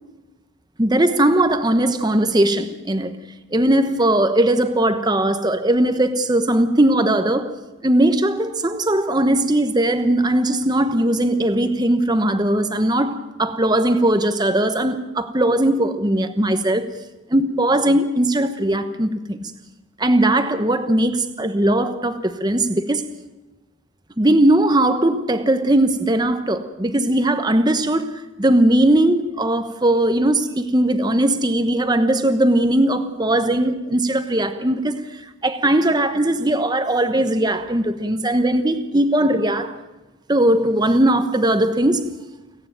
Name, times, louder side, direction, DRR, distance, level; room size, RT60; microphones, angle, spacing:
voice 1, 0.8-3.2 3.5-7.5 7.8-16.9 17.3-19.5 20.0-23.1 24.2-28.1 28.4-35.1 35.4-39.8 40.3-42.1, right 1 dB, 20° right, 1.1 m, -19 dB
29.5 x 9.8 x 9.2 m
head